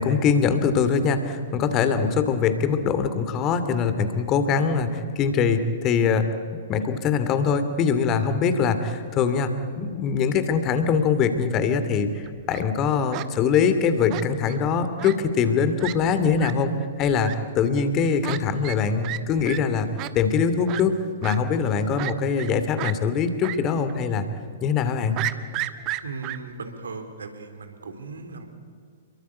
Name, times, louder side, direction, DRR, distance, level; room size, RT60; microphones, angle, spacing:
voice 1, 0.0-6.3 6.7-16.7 17.0-19.9 20.1-20.9 21.2-24.3 24.6-25.2, left 6 dB, 30° left, 10 dB, 2.6 m, -23 dB
Fowl, 12.2-12.6 13.1-13.3 14.1-14.6 15.0-15.2 15.5-15.6 15.8-15.9 16.4-16.5 17.2-17.3 18.2-18.4 18.6-18.8 19.0-19.2 19.5-19.6 20.0-20.1 20.7-20.8 21.2-21.4 22.0-22.5 22.8-22.9 23.4-23.6 23.9-24.0 25.2-26.4, right 17 dB, 35° right, 1.2 m, -31 dB
voice 2, 26.0-28.5, right 4 dB, 70° right, 7 dB, 3.7 m, -37 dB
28.5 x 23.0 x 8.5 m, 2.1 s
figure-of-eight pair, 110°, 0 cm